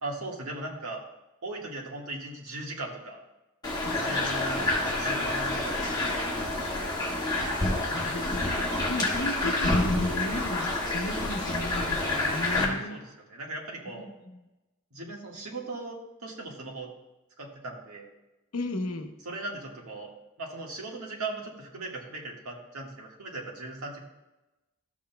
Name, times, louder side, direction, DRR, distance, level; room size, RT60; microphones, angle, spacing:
voice 1, 0.0-1.0 1.4-3.2 3.9-6.9 7.9-8.2 12.5-14.1 14.9-16.9 17.4-18.1 19.2-20.1 20.4-24.0, right 2 dB, 85° right, -1 dB, 1.7 m, -39 dB
sound 1, 3.6-12.7, left 2 dB, 20° left, 1.7 m, -28 dB
voice 2, 7.9-13.0 13.9-14.4 18.5-19.1, left 2 dB, 80° left, 5 dB, 0.9 m, -35 dB
12.5 x 7.3 x 2.3 m, 1.0 s
head